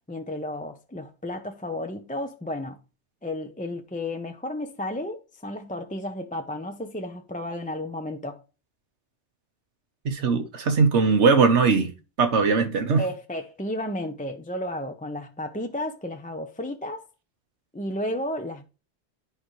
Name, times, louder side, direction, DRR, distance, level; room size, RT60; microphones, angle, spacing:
voice 1, 0.0-2.8 3.2-8.4 13.0-17.1 17.7-18.6, left 1 dB, 10° left, 0.5 m, -33 dB
voice 2, 10.0-11.9 12.2-13.0, right 4 dB, 90° right, 1.5 m, -20 dB
9.9 x 5.0 x 3.1 m
omnidirectional pair, 1.1 m